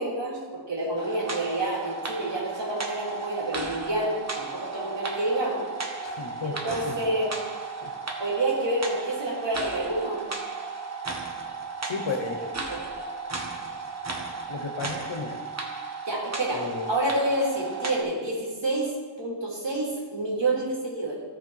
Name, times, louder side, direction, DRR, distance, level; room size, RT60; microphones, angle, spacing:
voice 1, 0.0-5.7 6.4-7.3 8.2-10.3 12.7-12.8 16.1-18.9 19.2-21.2, right 1 dB, 75° right, -4 dB, 2.9 m, -28 dB
sound 1, 1.0-18.0, right 4 dB, 35° right, 1.2 m, -35 dB
voice 2, 6.0-7.0 7.8-7.9 11.8-12.5 14.5-15.4 16.5-16.9, left 4 dB, 85° left, 5 dB, 1.2 m, -33 dB
14.5 x 4.8 x 4.7 m, 1.5 s
wide cardioid pair, 110°, 44 cm